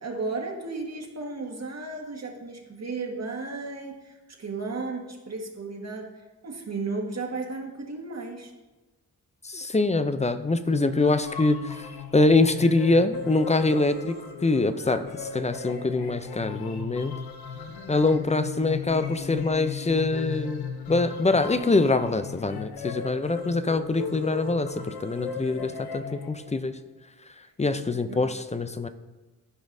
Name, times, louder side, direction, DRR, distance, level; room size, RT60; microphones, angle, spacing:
voice 1, 0.0-6.1 6.4-8.5 27.9-28.2, right 3 dB, 45° right, 1 dB, 1.6 m, -34 dB
voice 2, 9.4-11.8 12.1-14.2 14.4-15.1 15.3-17.1 17.9-26.8 27.6-28.9, left 3 dB, 20° left, 11 dB, 0.5 m, -24 dB
sound 1, 10.7-26.7, left 6 dB, 90° left, 0.7 m, -37 dB
14.0 x 5.1 x 2.7 m, 1.1 s
cardioid pair, 60°, 37 cm